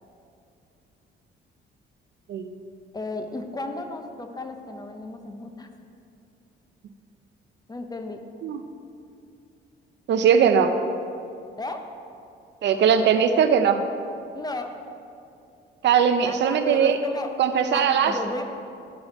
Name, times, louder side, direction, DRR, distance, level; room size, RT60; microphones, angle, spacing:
voice 1, 2.9-5.7 7.7-8.2 11.6-11.9 14.3-14.8 16.2-17.3 17.7-18.4, left 2 dB, 20° left, 6 dB, 0.7 m, -34 dB
voice 2, 10.1-10.8 12.6-13.8 15.8-17.0 17.4-18.2, right 7 dB, 65° right, 8 dB, 0.6 m, -20 dB
12.0 x 4.8 x 4.1 m, 2.6 s
cardioid pair, 90°, 20 cm